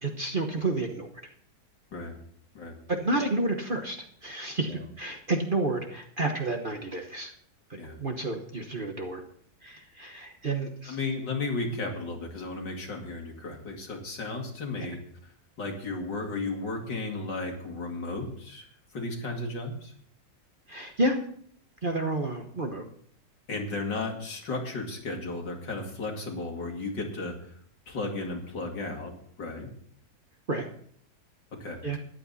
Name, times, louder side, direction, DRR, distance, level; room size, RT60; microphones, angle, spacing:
voice 1, 0.0-1.1 2.9-7.3 7.7-9.2 9.6-11.0 14.8-14.9 20.7-21.2 21.8-22.8 30.5-30.7 31.8-32.0, right 2 dB, 35° right, 4 dB, 1.1 m, -30 dB
voice 2, 10.9-15.3 15.6-18.7 18.9-19.9 23.5-27.6 27.9-29.7 31.6-32.0, left 3 dB, 75° left, 1 dB, 3.1 m, -34 dB
14.5 x 11.0 x 4.2 m, 0.62 s
omnidirectional pair, 1.9 m